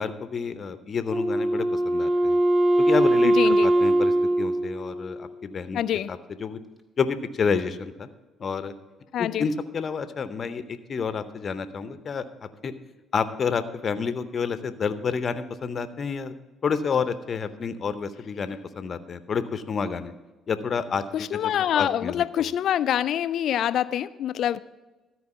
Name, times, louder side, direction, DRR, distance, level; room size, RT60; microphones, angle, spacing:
voice 1, 0.0-2.4 2.8-5.8 6.1-6.6 7.0-8.1 8.4-8.7 9.2-12.7 13.1-16.3 16.6-20.1 20.5-22.5, left 5 dB, 45° left, 12 dB, 0.7 m, -29 dB
Wind instrument woodwind instrument, 1.1-5.6, right 1 dB, 5° right, 1.4 m, -22 dB
voice 2, 3.4-3.7 5.7-6.1 9.1-9.5 21.1-24.6, left 10 dB, 65° left, 17 dB, 0.3 m, -25 dB
13.0 x 4.7 x 6.9 m, 1.1 s
hypercardioid pair, 50°, 0 cm